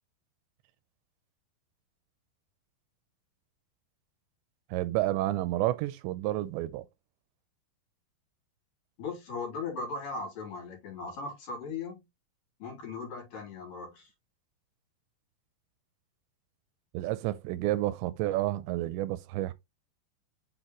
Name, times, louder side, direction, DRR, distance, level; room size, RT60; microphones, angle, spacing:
voice 1, 4.7-6.9 16.9-19.5, right 15 dB, 85° right, 2.8 m, -30 dB
voice 2, 9.0-12.0 12.6-14.1, left 4 dB, 55° left, 4.7 m, -38 dB
7.4 x 4.3 x 3.0 m
omnidirectional pair, 5.1 m